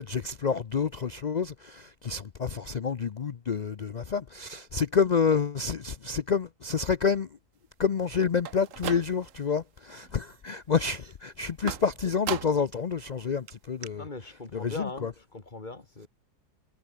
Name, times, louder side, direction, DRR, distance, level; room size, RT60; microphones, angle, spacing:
voice 1, 0.0-7.3 7.8-14.1 14.5-15.1, left 6 dB, 85° left, 0.3 m, -28 dB
sound 1, 8.3-9.5 9.9-10.4 11.7-12.8 13.1-13.2 13.5-13.6 13.8-13.9, right 9 dB, 60° right, 1.3 m, -37 dB
voice 2, 13.9-16.1, left 3 dB, 30° left, 2.2 m, -40 dB
omnidirectional pair, 1.7 m